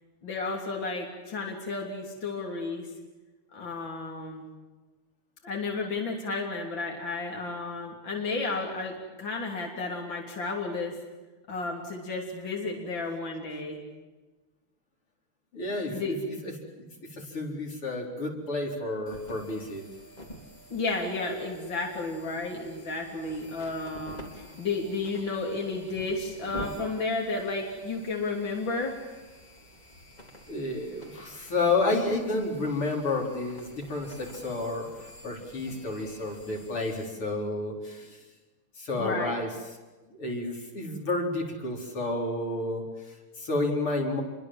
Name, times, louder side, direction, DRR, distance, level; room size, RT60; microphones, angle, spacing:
voice 1, 0.2-2.9 3.5-4.5 5.4-10.9 11.5-13.8 15.9-16.2 20.7-28.9 35.7-35.9 39.0-39.3, left 3 dB, 60° left, 0 dB, 4.0 m, -32 dB
voice 2, 15.5-16.7 17.1-19.9 30.5-38.2 38.8-39.5 40.1-44.2, left 2 dB, 80° left, 0 dB, 5.3 m, -31 dB
sound 1, 19.1-37.1, equal, 20° left, 4.1 m, -48 dB
28.5 x 23.5 x 7.6 m, 1.2 s
omnidirectional pair, 2.4 m